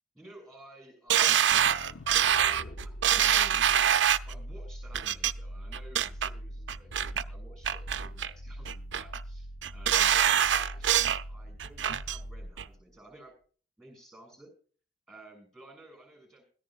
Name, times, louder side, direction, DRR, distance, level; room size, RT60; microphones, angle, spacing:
voice 1, 0.1-13.3 13.8-14.5 15.1-16.4, right 1 dB, ahead, 5 dB, 6.4 m, -53 dB
sound 1, 1.1-4.3 4.9-5.3 5.7-6.3 6.7-7.2 7.6-8.3 8.6-9.2 9.6-11.2 11.6-12.2 12.6-12.7, right 10 dB, 80° right, 0.5 m, -25 dB
sound 2, 1.5-13.0, equal, 75° left, 0.7 m, -43 dB
20.5 x 13.5 x 2.4 m, 0.41 s
head